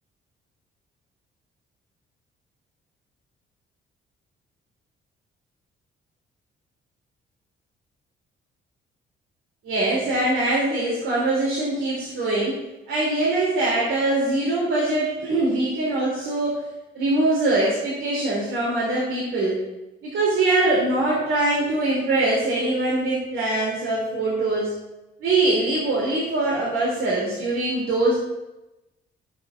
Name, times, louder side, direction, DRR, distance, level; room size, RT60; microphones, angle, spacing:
voice 1, 9.6-12.6 12.9-16.6 16.9-19.6 20.0-24.7 25.2-28.1, right 2 dB, 80° right, -6 dB, 3.0 m, -23 dB
15.5 x 6.9 x 2.5 m, 0.98 s
cardioid pair, 90°, 20 cm